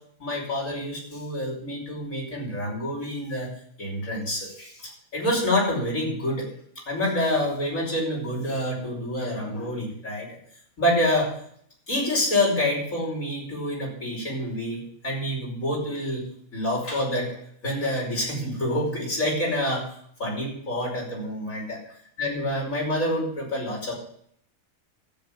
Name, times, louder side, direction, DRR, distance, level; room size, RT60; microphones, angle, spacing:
voice 1, 0.2-3.5 3.8-6.5 6.9-10.4 10.8-11.3 11.9-16.2 16.5-17.3 17.6-19.9 20.2-21.8 22.2-23.9, left 1 dB, 75° left, -2 dB, 5.6 m, -27 dB
13.0 x 7.7 x 7.4 m, 0.65 s
omnidirectional pair, 1.4 m